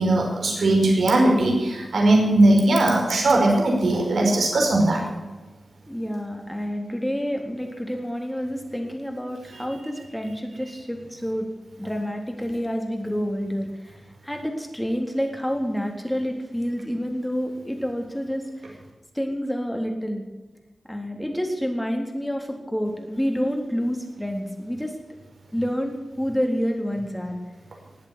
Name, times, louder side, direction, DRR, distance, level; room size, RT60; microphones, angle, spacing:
voice 1, 0.0-5.0, right 2 dB, 90° right, 0 dB, 5.0 m, -19 dB
voice 2, 5.9-11.5 11.8-18.8 19.2-20.2 20.9-24.9 25.5-27.4, equal, 5° left, 2 dB, 3.6 m, -28 dB
19.5 x 8.2 x 8.2 m, 1.2 s
wide cardioid pair, 90°, 0 cm